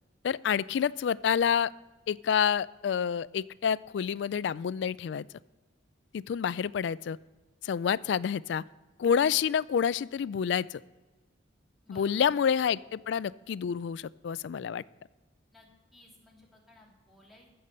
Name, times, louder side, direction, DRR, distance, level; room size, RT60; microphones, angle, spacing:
voice 1, 0.2-1.7 2.1-5.3 6.1-7.2 7.6-8.6 9.0-10.8 11.9-14.8, left 7 dB, 65° left, 20 dB, 0.3 m, -28 dB
voice 2, 11.8-12.4 15.5-17.5, left 1 dB, ahead, -3 dB, 2.8 m, -58 dB
15.5 x 6.8 x 5.5 m, 1.2 s
head